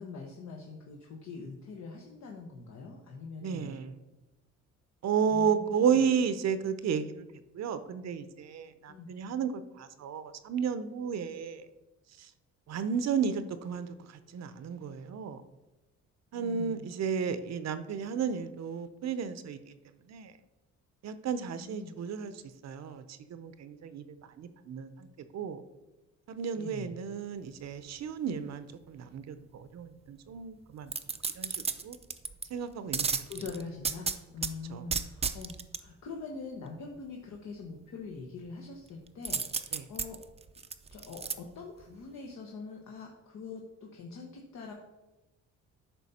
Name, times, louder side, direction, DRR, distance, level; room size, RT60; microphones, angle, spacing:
voice 1, 0.0-3.7 5.3-6.0 8.9-9.1 16.3-16.9 21.5-21.9 26.5-26.9 33.2-40.2 40.9-44.7, left 4 dB, 65° left, 1.1 m, -44 dB
voice 2, 3.4-3.9 5.0-7.3 7.5-11.7 12.2-12.3 12.7-15.4 16.3-19.7 20.1-20.3 21.0-24.0 24.4-25.1 25.3-25.6 26.3-30.9 31.4-32.0 32.5-33.1 34.7-34.8 39.7-39.9, right 7 dB, 60° right, 0.7 m, -33 dB
sound 1, 30.9-32.5 32.9-34.5 34.9-35.8 39.2-41.3 41.8-41.9, right 5 dB, 20° right, 0.5 m, -33 dB
9.2 x 5.7 x 4.2 m
cardioid pair, 90°, 30 cm